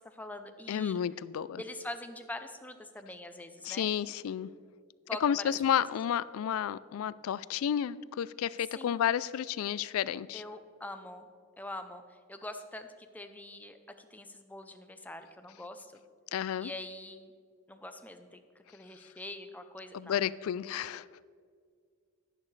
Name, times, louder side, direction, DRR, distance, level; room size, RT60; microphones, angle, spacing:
voice 1, 0.0-1.0 1.6-3.9 5.1-5.5 8.8-9.0 10.3-11.3 11.6-16.0 16.6-17.3 17.7-20.2, left 1 dB, 10° left, 7 dB, 0.5 m, -44 dB
voice 2, 0.7-1.6 3.6-4.5 5.2-10.4 16.3-16.7 19.9-21.1, left 9 dB, 80° left, 19 dB, 0.3 m, -31 dB
11.0 x 10.5 x 3.2 m, 2.1 s
head